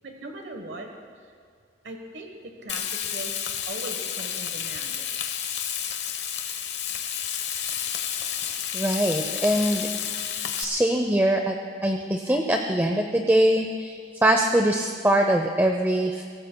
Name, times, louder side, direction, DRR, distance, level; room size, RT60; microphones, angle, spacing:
voice 1, 0.0-0.9 1.8-5.0, right 2 dB, 70° right, 3 dB, 1.2 m, -39 dB
Frying (food), 2.7-10.6, left 9 dB, 70° left, 1.1 m, -31 dB
voice 2, 8.7-9.9 10.6-11.5 11.8-16.2, right 1 dB, 10° right, 3 dB, 0.6 m, -22 dB
23.0 x 17.5 x 2.2 m, 2.1 s
head